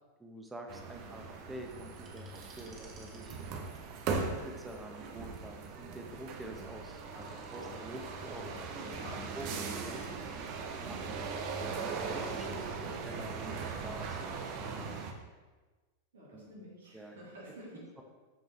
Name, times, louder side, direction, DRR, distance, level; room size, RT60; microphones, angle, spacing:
voice 1, 0.2-3.4 4.3-8.7 9.3-10.0 10.8-15.1 16.3-16.5 16.9-17.2 18.0-18.1, right 1 dB, 10° right, 3 dB, 1.2 m, -47 dB
sound 1, 0.7-15.1, right 4 dB, 40° right, 0.9 m, -39 dB
sound 2, 2.0-4.7 6.8-7.7, right 2 dB, 25° right, 1.7 m, -59 dB
voice 2, 7.1-7.8 8.0-9.3 10.8-11.2 12.5-13.0 16.1-18.0, right 1 dB, 65° right, -4 dB, 2.8 m, -49 dB
13.0 x 5.3 x 3.2 m, 1.3 s
figure-of-eight pair, 90°, 0 cm